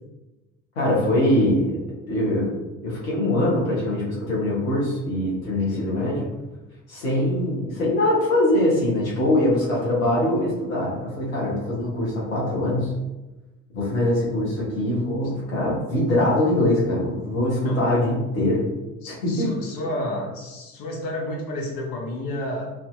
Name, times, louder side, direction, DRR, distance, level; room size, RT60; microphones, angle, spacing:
voice 1, 0.8-1.7 2.1-2.5 2.8-6.3 6.9-12.9 13.7-18.7 19.1-19.5, left 1 dB, 90° left, -5 dB, 1.2 m, -22 dB
voice 2, 5.7-6.3 17.6-17.9 19.0-22.7, left 1 dB, 60° left, 0 dB, 1.1 m, -31 dB
4.7 x 2.7 x 2.4 m, 1.1 s
hypercardioid pair, 50°, 39 cm